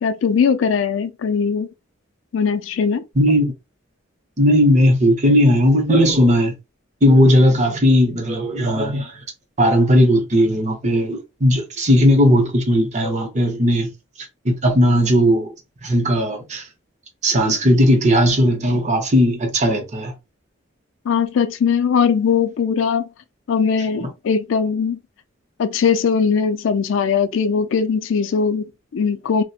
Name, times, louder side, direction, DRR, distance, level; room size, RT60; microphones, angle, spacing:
voice 1, 0.0-1.7 2.3-3.0 21.1-23.1 23.5-25.0 25.6-29.4, left 6 dB, 70° left, 0.3 m, -20 dB
voice 2, 3.1-3.5 4.4-6.5 7.0-9.2 9.6-13.9 14.2-15.5 15.8-16.7 17.2-20.1 24.0-24.1, equal, 35° right, 0.7 m, -16 dB
2.8 x 2.1 x 2.3 m
head